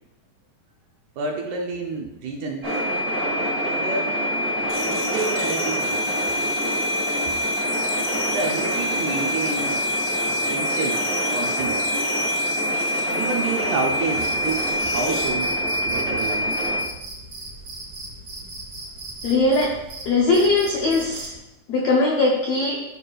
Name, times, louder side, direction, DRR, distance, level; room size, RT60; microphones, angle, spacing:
voice 1, 1.2-2.8 3.7-4.1 4.5-6.1 8.2-9.8 10.3-11.1 11.3-11.8 13.1-15.6 15.8-16.5, right 4 dB, 75° right, 0 dB, 1.9 m, -29 dB
sound 1, 2.6-16.8, equal, 15° right, 1.1 m, -25 dB
sound 2, 4.7-15.3, left 2 dB, 55° left, 2.6 m, -35 dB
Cricket, 14.2-21.4, right 2 dB, 45° right, 1.1 m, -37 dB
voice 2, 19.2-19.8 20.0-21.3 21.7-22.8, left 3 dB, 75° left, -2 dB, 1.5 m, -20 dB
13.5 x 4.7 x 2.4 m, 0.90 s
omnidirectional pair, 4.1 m